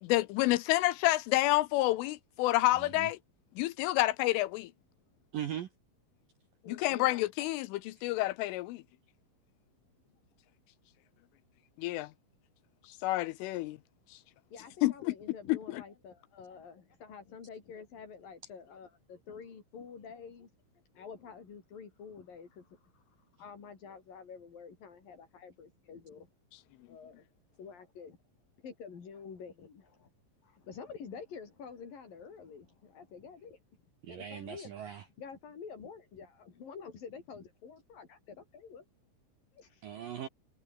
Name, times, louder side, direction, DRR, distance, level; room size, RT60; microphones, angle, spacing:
voice 1, 0.0-3.2 3.6-4.7 6.7-8.8 11.8-12.1 13.0-13.8 14.8-15.1 15.5-15.8, left 18 dB, 80° left, 3.3 m, -29 dB
voice 2, 2.8-3.1 5.3-5.7 34.0-35.0 39.8-40.3, right 10 dB, 65° right, 2.3 m, -39 dB
voice 3, 6.6-7.2 14.5-20.5 20.9-23.0 23.4-26.3 26.9-27.2 27.6-28.2 28.6-30.1 30.4-33.6 34.1-34.7 35.2-38.9 39.5-39.8, left 6 dB, 45° left, 5.5 m, -48 dB
omnidirectional pair, 5.8 m